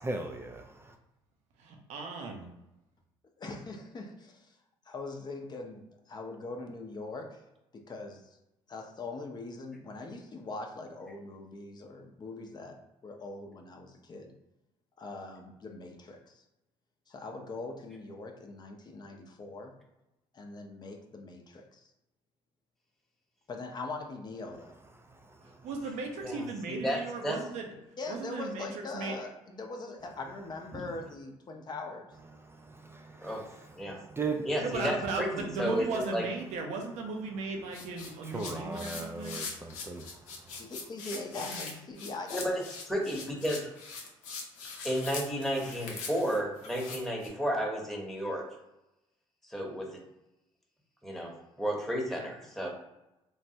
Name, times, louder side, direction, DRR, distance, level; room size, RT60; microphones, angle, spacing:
voice 1, 0.1-0.6 32.9-33.3 34.1-34.5 38.3-40.0, right 3 dB, 20° right, 3 dB, 0.3 m, -36 dB
voice 2, 1.6-2.5 25.6-27.7 28.1-29.2 34.6-39.4 41.4-41.7, right 3 dB, 75° right, 2 dB, 0.6 m, -36 dB
voice 3, 3.4-4.5 4.9-7.4 7.7-8.2 8.7-12.8 13.0-14.3 15.0-16.4 17.1-19.7 20.3-21.8 23.5-24.7 28.0-32.1 40.6-42.6, left 3 dB, 35° left, 3 dB, 0.5 m, -42 dB
voice 4, 26.2-27.0 27.2-27.4 30.7-30.8 33.2-33.4 33.8-34.0 34.4-35.9 36.1-36.2 42.3-43.7 44.8-48.4 49.5-50.0 51.0-52.7, equal, 5° left, -2 dB, 0.9 m, -32 dB
sound 1, 37.7-47.3, left 4 dB, 85° left, 0.6 m, -42 dB
3.1 x 2.1 x 2.7 m, 0.92 s
supercardioid pair, 75°, 12 cm